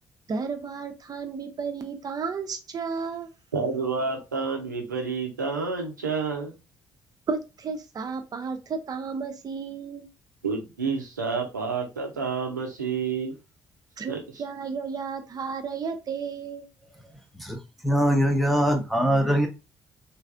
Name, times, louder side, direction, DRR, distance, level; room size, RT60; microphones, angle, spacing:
voice 1, 0.3-3.3 7.3-10.1 14.0-16.7, right 5 dB, 40° right, 0.6 m, -33 dB
voice 2, 3.5-6.5 10.4-13.3 14.1-14.2, right 5 dB, 90° right, 0.6 m, -29 dB
voice 3, 17.3-19.5, equal, ahead, 0.8 m, -22 dB
3.2 x 2.6 x 2.3 m
figure-of-eight pair, 45°, 10 cm